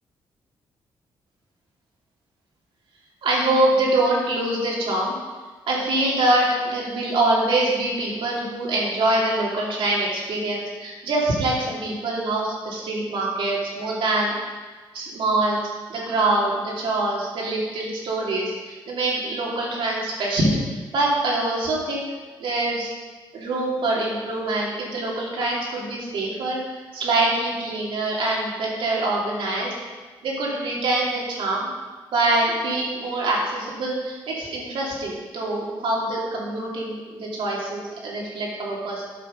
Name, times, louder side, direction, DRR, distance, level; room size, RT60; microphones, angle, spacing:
voice 1, 3.2-5.1 5.7-14.3 14.9-15.6 15.9-20.6 20.9-22.1 22.4-22.9 23.3-26.6 26.9-29.7 30.2-31.7 32.1-39.0, right 2 dB, 80° right, -4 dB, 2.7 m, -24 dB
10.0 x 6.1 x 5.1 m, 1.4 s
cardioid pair, 85°, 9 cm